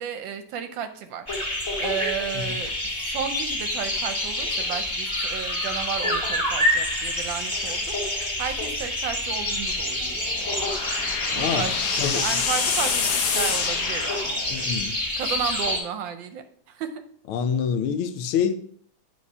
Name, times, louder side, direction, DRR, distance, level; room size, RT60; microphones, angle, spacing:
voice 1, 0.0-10.5 11.3-14.4 15.2-17.0, right 8 dB, 75° right, 1.2 m, -33 dB
sound 1, 1.3-15.8, left 1 dB, 15° left, 1.9 m, -27 dB
sound 2, 10.2-14.7, left 6 dB, 60° left, 1.1 m, -27 dB
voice 2, 11.3-11.7 12.0-12.2 14.5-15.0 17.3-18.6, left 7 dB, 90° left, 1.5 m, -26 dB
9.4 x 3.3 x 5.4 m
omnidirectional pair, 2.3 m